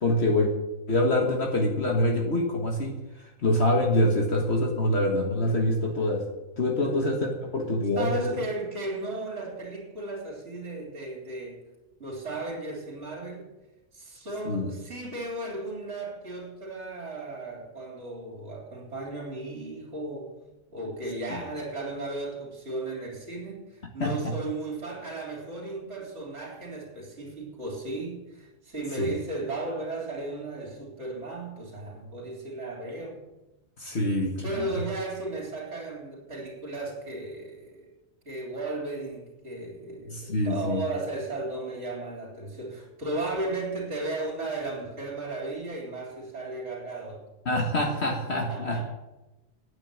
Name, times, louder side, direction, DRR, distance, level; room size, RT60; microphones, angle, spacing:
voice 1, 0.0-0.5 0.9-3.0 3.4-6.2 6.6-8.4 14.5-14.7 21.3-21.4 24.0-24.1 29.0-29.1 33.8-34.8 40.1-40.9 47.5-48.8, left 1 dB, 50° left, 2 dB, 1.7 m, -25 dB
voice 2, 8.0-11.6 12.0-13.5 13.9-20.3 20.7-33.3 34.4-37.8 38.3-47.2 48.5-48.8, right 2 dB, 55° right, -2 dB, 3.5 m, -35 dB
9.2 x 9.1 x 8.5 m, 1.1 s
omnidirectional pair, 1.4 m